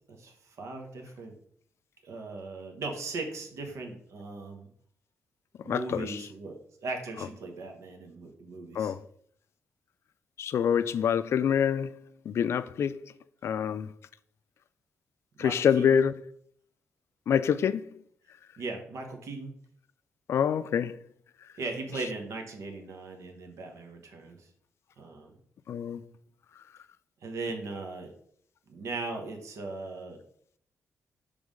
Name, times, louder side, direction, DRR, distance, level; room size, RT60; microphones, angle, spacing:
voice 1, 0.1-1.4 2.0-4.7 5.6-8.9 15.3-16.0 18.6-19.5 21.6-24.5 25.0-25.4 27.2-28.1 28.7-30.2, right 3 dB, 75° right, 1.1 m, -38 dB
voice 2, 5.7-6.2 8.8-9.0 10.4-12.0 12.3-13.0 13.4-13.9 15.4-16.1 17.3-17.9 20.3-21.0 25.7-26.0, left 8 dB, 60° left, 0.3 m, -26 dB
5.4 x 3.4 x 5.1 m
wide cardioid pair, 140°, 5 cm